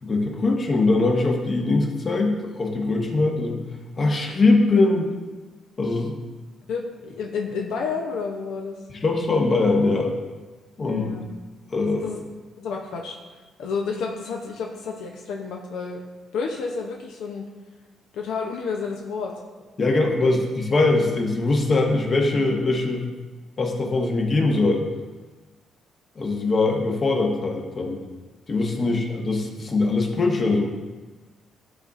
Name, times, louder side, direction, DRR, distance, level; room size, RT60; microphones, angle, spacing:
voice 1, 0.0-3.6 4.0-5.1 5.8-6.1 9.0-10.1 10.8-11.1 11.7-12.1 19.8-23.1 23.6-24.8 26.2-28.0 28.5-30.7, left 3 dB, 40° left, 1 dB, 1.2 m, -22 dB
voice 2, 6.7-8.8 10.8-11.3 12.0-12.2 12.6-13.2 13.6-16.0 16.3-17.4 18.1-19.3 20.2-20.3 28.8-29.0, left 5 dB, 85° left, 1 dB, 0.6 m, -30 dB
11.5 x 4.0 x 2.5 m, 1.3 s
cardioid pair, 90°, 0 cm